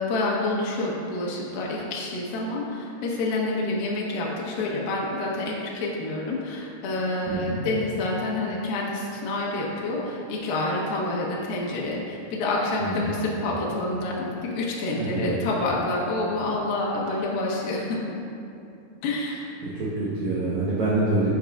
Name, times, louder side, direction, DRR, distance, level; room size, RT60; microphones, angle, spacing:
voice 1, 0.0-18.0 19.0-19.4, left 2 dB, 65° left, -4 dB, 2.9 m, -28 dB
voice 2, 7.3-7.6 12.8-13.2 14.9-15.3 19.6-21.3, right 2 dB, 70° right, -8 dB, 1.8 m, -26 dB
11.0 x 8.9 x 2.5 m, 2.7 s
omnidirectional pair, 4.9 m